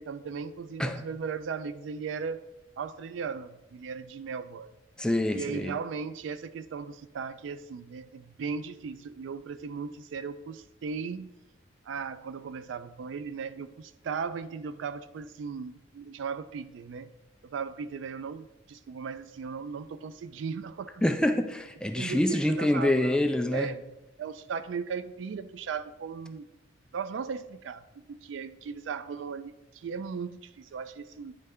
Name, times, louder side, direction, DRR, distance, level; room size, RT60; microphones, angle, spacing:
voice 1, 0.0-2.4 2.8-4.7 5.3-11.3 11.9-17.1 17.4-21.0 21.9-23.8 24.2-26.5 26.9-27.8 28.1-31.3, right 5 dB, 70° right, 0.3 m, -37 dB
voice 2, 5.0-5.7 21.0-23.7, left 1 dB, 5° left, 0.3 m, -26 dB
9.4 x 3.3 x 3.5 m
head